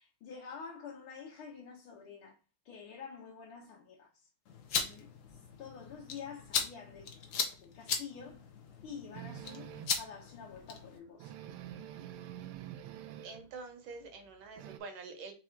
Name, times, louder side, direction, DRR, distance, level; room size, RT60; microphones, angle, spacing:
voice 1, 0.0-2.4 2.7-4.3 4.8-7.1 7.6-8.4 8.8-11.4, left 6 dB, 80° left, 1.8 m, -48 dB
sound 1, 4.5-11.0, left 5 dB, 60° left, 0.8 m, -38 dB
sound 2, 9.1-10.1 10.6-10.7 10.9-11.0 11.2-13.5 13.9-14.8, right 11 dB, 90° right, 1.5 m, -46 dB
voice 2, 13.2-15.3, right 4 dB, 75° right, 1.8 m, -46 dB
4.7 x 2.5 x 4.3 m
omnidirectional pair, 2.3 m